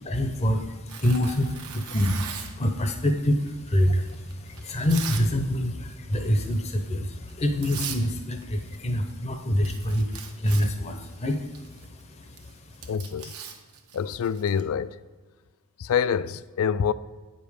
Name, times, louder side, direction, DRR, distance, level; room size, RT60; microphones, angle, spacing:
voice 1, 0.1-11.5 11.9-12.3, equal, 30° left, 0.7 m, -26 dB
Tearing, 0.9-2.7 3.4-5.3 5.6-5.9 6.3-6.6 7.3-7.4 7.6-8.0 8.3-9.2 9.4-14.6, right 7 dB, 80° right, 1.0 m, -39 dB
voice 2, 12.9-13.4 13.9-15.0 15.8-16.9, left 7 dB, 70° left, 0.3 m, -26 dB
8.7 x 5.3 x 5.0 m
head